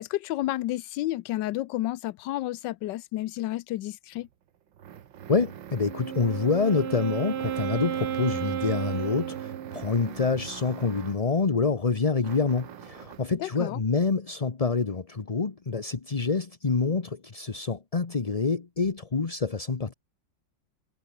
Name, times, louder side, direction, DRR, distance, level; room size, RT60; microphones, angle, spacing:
voice 1, 0.0-4.3 13.4-13.8, left 15 dB, 80° left, 1.3 m, -31 dB
sound 1, 4.1-11.3 12.2-13.3, right 10 dB, 90° right, 2.0 m, -43 dB
voice 2, 5.3-19.9, left 4 dB, 25° left, 0.8 m, -27 dB
Wind instrument woodwind instrument, 5.7-10.1, right 9 dB, 60° right, 0.7 m, -33 dB
omnidirectional pair, 2.0 m